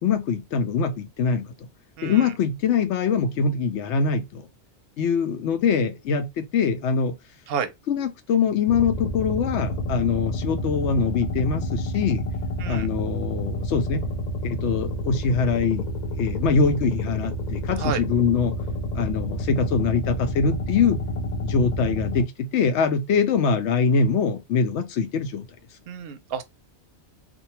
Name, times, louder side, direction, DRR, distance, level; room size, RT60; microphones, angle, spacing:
voice 1, 0.0-1.5 2.0-4.5 5.0-7.2 7.9-12.3 12.7-14.0 14.4-15.9 16.2-18.5 18.9-21.0 21.4-25.4, left 5 dB, 85° left, 0.9 m, -23 dB
voice 2, 2.0-2.3 7.5-7.7 12.6-12.9 17.8-18.0 25.9-26.4, right 6 dB, 65° right, 0.7 m, -30 dB
sound 1, 8.7-22.2, left 1 dB, 50° left, 0.5 m, -29 dB
2.6 x 2.2 x 2.8 m
omnidirectional pair, 1.2 m